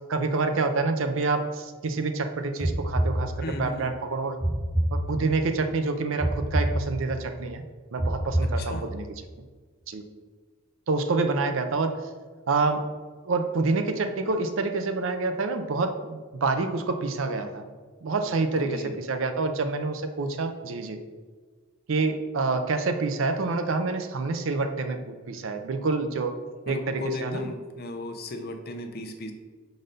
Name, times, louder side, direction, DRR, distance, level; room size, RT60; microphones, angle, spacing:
voice 1, 0.1-4.4 4.9-7.6 7.9-9.1 9.9-10.0 10.9-12.0 12.5-12.9 13.3-17.6 18.0-21.0 21.9-26.4 26.7-27.4, right 3 dB, 70° right, 8 dB, 0.5 m, -27 dB
sound 1, 2.6-3.8 4.4-5.6 6.2-7.4 8.0-9.1, right 1 dB, 5° right, 0.4 m, -27 dB
voice 2, 3.4-3.9 8.4-8.9 18.5-19.0 26.7-29.3, left 2 dB, 50° left, 5 dB, 0.7 m, -35 dB
5.3 x 4.0 x 5.1 m, 1.5 s
head